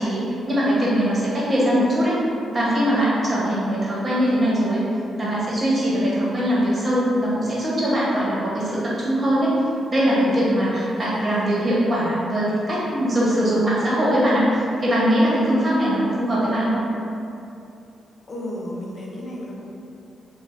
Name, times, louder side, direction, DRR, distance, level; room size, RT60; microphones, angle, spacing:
voice 1, 0.0-2.2 2.5-4.8 5.2-9.5 9.9-16.8, equal, 35° right, -7 dB, 1.2 m, -21 dB
voice 2, 10.7-11.6 18.3-19.7, left 1 dB, 45° left, -3 dB, 0.7 m, -34 dB
4.6 x 2.4 x 2.7 m, 2.6 s
cardioid pair, 80°, 0 cm